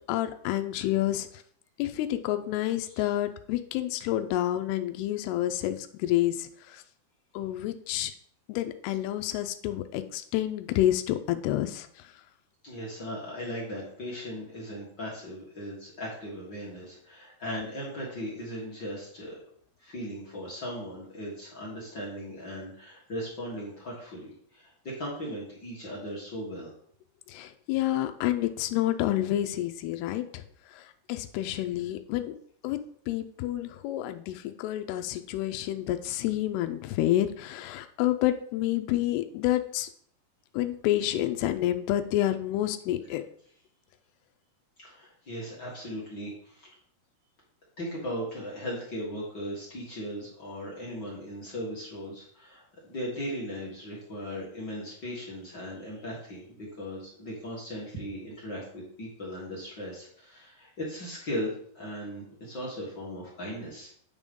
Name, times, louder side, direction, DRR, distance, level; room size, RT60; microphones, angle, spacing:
voice 1, 0.1-1.3 1.8-6.8 7.4-8.1 8.5-12.1 27.3-30.4 30.7-32.4 32.6-32.8 33.1-39.9 40.5-43.2, left 14 dB, 85° left, 8 dB, 2.6 m, -29 dB
voice 2, 12.6-19.4 19.8-26.7 44.8-46.7 47.8-52.6 52.9-63.9, equal, 55° left, -5 dB, 1.2 m, -38 dB
9.0 x 3.6 x 5.2 m, 0.63 s
omnidirectional pair, 4.5 m